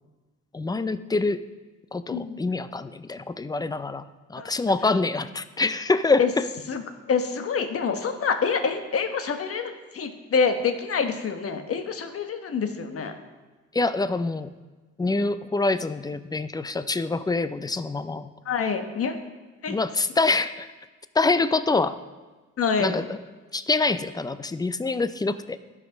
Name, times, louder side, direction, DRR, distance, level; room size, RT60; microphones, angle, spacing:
voice 1, 0.5-1.4 1.9-6.4 13.7-14.5 15.0-18.3 19.7-20.7 21.1-22.0 22.8-23.2 23.5-25.6, left 3 dB, 15° left, 13 dB, 0.4 m, -25 dB
voice 2, 7.1-13.1 18.4-19.2 19.6-19.8 22.6-22.9, left 5 dB, 50° left, 7 dB, 1.2 m, -26 dB
12.5 x 6.1 x 5.2 m, 1.3 s
cardioid pair, 90°, 30 cm